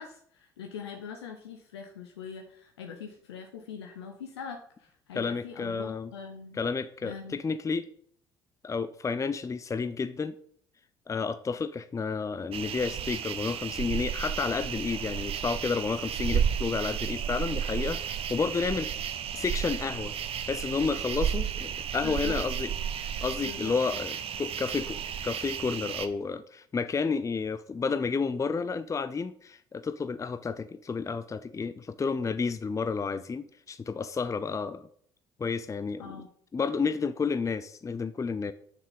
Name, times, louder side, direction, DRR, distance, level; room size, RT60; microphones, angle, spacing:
voice 1, 0.0-6.6 7.0-7.4 22.0-22.4 23.4-23.7 36.0-36.3, left 6 dB, 80° left, 4 dB, 0.9 m, -42 dB
voice 2, 5.1-6.1 6.5-7.9 8.6-10.3 11.1-18.9 19.3-20.1 20.5-22.7 23.2-34.9 35.4-36.2 36.5-38.5, left 5 dB, 25° left, 12 dB, 0.6 m, -31 dB
sound 1, 12.5-26.1, right 8 dB, 45° right, 1.0 m, -33 dB
7.2 x 6.5 x 7.0 m, 0.64 s
figure-of-eight pair, 55°, 13 cm